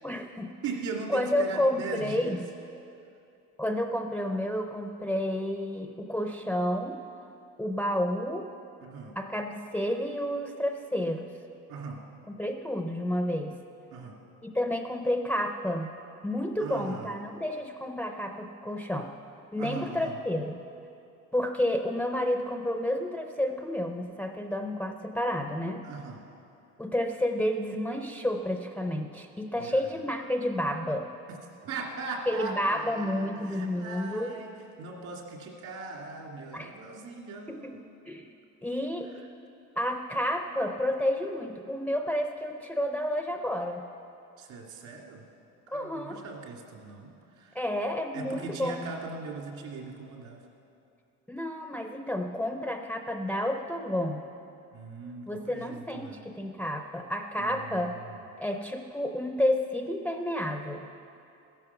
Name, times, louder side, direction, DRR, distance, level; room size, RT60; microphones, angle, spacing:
voice 1, 0.0-0.5 1.1-2.4 3.6-7.0 7.6-8.5 9.2-11.3 12.4-13.6 14.4-15.9 16.2-19.1 19.5-20.6 21.3-25.9 26.8-31.1 32.3-34.4 36.5-36.7 37.5-37.8 38.1-38.3 38.6-39.1 39.8-43.8 45.7-46.2 47.5-48.8 51.3-54.3 55.3-57.9 58.4-60.9, left 1 dB, 5° left, 4 dB, 0.4 m, -30 dB
voice 2, 0.6-2.4 8.8-9.2 11.7-12.0 13.9-14.2 16.6-17.1 19.6-20.2 25.8-26.2 29.5-30.0 31.3-34.5 34.8-37.9 44.4-45.2 45.7-47.6 48.1-50.4 54.7-56.2 57.4-58.2, right 4 dB, 65° right, 0 dB, 2.4 m, -40 dB
15.0 x 11.0 x 6.9 m, 2.6 s
cardioid pair, 175°, 32 cm